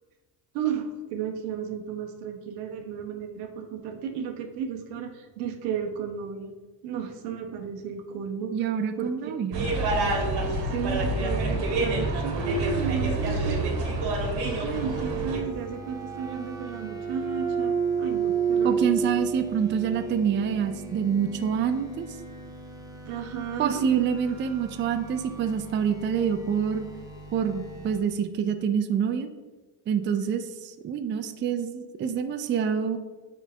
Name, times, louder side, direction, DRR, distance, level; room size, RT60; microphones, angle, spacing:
voice 1, 0.5-6.5 6.8-8.5 9.0-9.3 10.4-13.8 14.4-18.8 23.0-23.8 24.3-24.4, right 6 dB, 80° right, 4 dB, 1.1 m, -33 dB
voice 2, 8.5-9.7 18.6-22.1 23.6-26.9 27.3-29.3 29.9-33.0, right 7 dB, 25° right, 8 dB, 0.4 m, -26 dB
sound 1, 9.5-15.4, right 2 dB, 55° right, 1.7 m, -27 dB
sound 2, 14.7-28.0, right 6 dB, 10° right, 1.2 m, -33 dB
4.5 x 4.0 x 5.4 m, 1.3 s
supercardioid pair, 85°, 47 cm